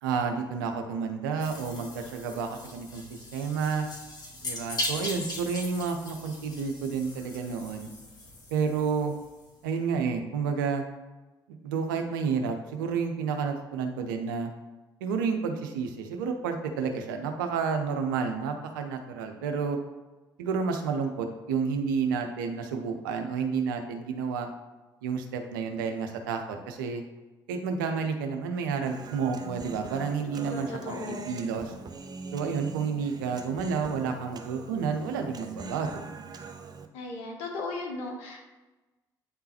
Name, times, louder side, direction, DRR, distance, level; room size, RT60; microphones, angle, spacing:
voice 1, 0.0-3.9 4.4-7.9 8.5-9.1 9.6-10.8 11.5-14.5 15.0-19.8 20.4-24.5 25.0-27.0 27.5-31.7 32.3-36.1, right 5 dB, 85° right, 5 dB, 0.7 m, -30 dB
sound 1, 1.4-9.5, left 1 dB, 40° left, 1.7 m, -39 dB
Human voice, 28.9-36.9, right 5 dB, 40° right, 0.7 m, -43 dB
voice 2, 30.3-31.3 36.9-38.5, left 3 dB, 75° left, 1 dB, 1.2 m, -36 dB
8.7 x 3.7 x 2.9 m, 1.1 s
hypercardioid pair, 50°, 11 cm